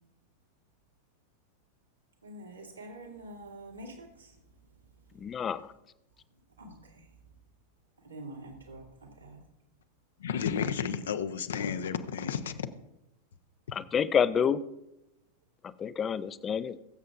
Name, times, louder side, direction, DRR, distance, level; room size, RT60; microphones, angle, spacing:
voice 1, 2.2-4.1 6.6-6.8 8.1-8.8 9.2-9.4, right 1 dB, 80° right, -3 dB, 2.5 m, -45 dB
voice 2, 5.2-5.7 13.7-14.6 15.8-16.8, left 7 dB, 25° left, 15 dB, 0.4 m, -28 dB
voice 3, 10.2-12.7, left 7 dB, 65° left, 11 dB, 0.7 m, -32 dB
21.5 x 7.5 x 2.5 m, 0.89 s
figure-of-eight pair, 90°, 0 cm